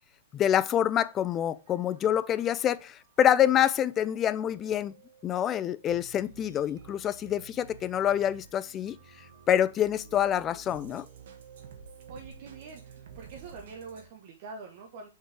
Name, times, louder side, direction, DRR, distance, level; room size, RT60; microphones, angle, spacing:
voice 1, 0.3-4.9 5.2-9.0 9.5-11.1, left 10 dB, 25° left, 0.4 m, -26 dB
sound 1, 1.1-14.1, right 7 dB, 65° right, 1.5 m, -52 dB
voice 2, 12.1-15.1, right 4 dB, 50° right, 1.2 m, -45 dB
6.0 x 4.7 x 3.5 m
hypercardioid pair, 135°, 0 cm